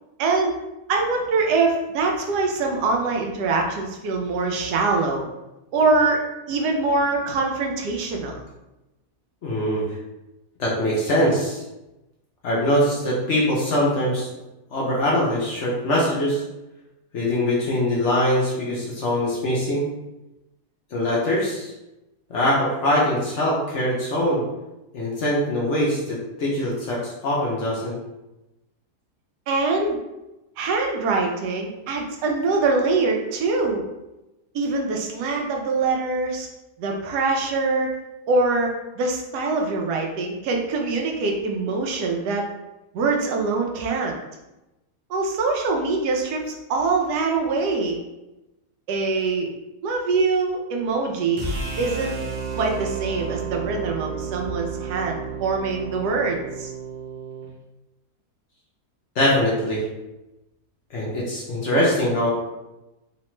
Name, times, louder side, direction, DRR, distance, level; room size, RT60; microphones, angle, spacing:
voice 1, 0.2-0.6 0.9-5.3 5.7-6.2 6.5-8.4 29.5-30.0 30.6-33.8 34.5-36.5 36.8-37.9 38.3-42.4 42.9-44.2 45.1-48.0 48.9-49.5 49.8-51.5 51.8-52.1 52.5-56.7, right 3 dB, 90° right, 1 dB, 1.2 m, -23 dB
voice 2, 9.4-9.8 10.6-11.6 12.4-14.3 14.7-16.4 17.1-19.9 20.9-21.7 22.3-24.4 24.9-28.0 59.2-59.8 60.9-62.3, left 1 dB, 60° left, -5 dB, 0.8 m, -22 dB
sound 1, 51.4-57.5, right 5 dB, 55° right, 0.5 m, -31 dB
3.2 x 2.1 x 2.9 m, 0.98 s
omnidirectional pair, 1.7 m